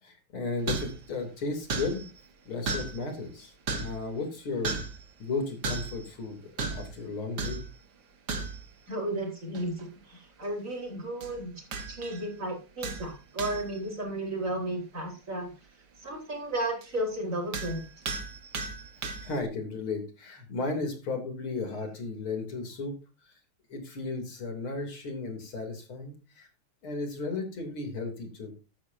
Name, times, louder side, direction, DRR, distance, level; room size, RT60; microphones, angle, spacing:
voice 1, 0.0-2.0 2.5-4.7 5.2-7.6 19.0-22.9 23.3-23.4 23.7-26.5 26.8-28.5, left 3 dB, 90° left, 4 dB, 4.0 m, -34 dB
sound 1, 0.7-1.1 1.7-2.2 2.7-3.1 3.7-4.1 4.6-5.0 5.6-6.1 6.6-7.0 7.4-7.8 8.3-8.7 9.5-9.8 11.2-11.4 11.7-12.3 12.8-13.8 16.8-16.9 17.5-19.4, right 4 dB, 55° right, 2.0 m, -35 dB
voice 2, 8.9-11.5 11.9-15.5 16.0-17.8, right 1 dB, 40° right, 1 dB, 4.8 m, -33 dB
15.0 x 12.0 x 2.7 m, 0.31 s
omnidirectional pair, 2.2 m